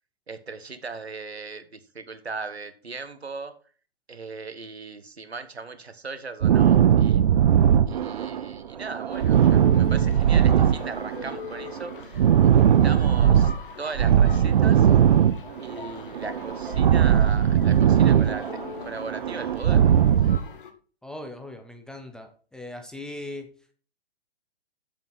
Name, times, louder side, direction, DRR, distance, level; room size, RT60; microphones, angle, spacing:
voice 1, 0.3-3.5 4.1-7.2 7.9-13.5 13.8-14.9 15.6-18.4 18.8-19.8, right 4 dB, 85° right, 11 dB, 1.5 m, -38 dB
sound 1, 6.4-8.5 8.8-11.4 11.6-13.6 13.9-15.9 16.1-18.7 19.0-20.4, right 9 dB, 50° right, 0.7 m, -19 dB
sound 2, 9.1-20.7, left 5 dB, 55° left, 1.6 m, -42 dB
voice 2, 21.0-23.5, left 1 dB, ahead, 5 dB, 0.6 m, -39 dB
7.7 x 7.3 x 5.9 m, 0.41 s
figure-of-eight pair, 130°, 31 cm